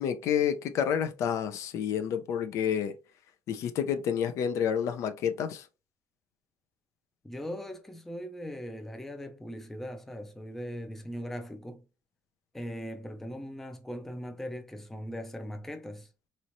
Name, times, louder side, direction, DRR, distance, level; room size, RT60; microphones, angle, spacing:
voice 1, 0.0-2.9 3.5-5.7, left 8 dB, 65° left, 0.5 m, -29 dB
voice 2, 7.2-11.8 12.5-16.1, equal, 5° left, 0.4 m, -39 dB
4.1 x 3.1 x 2.6 m
cardioid pair, 150°, 6 cm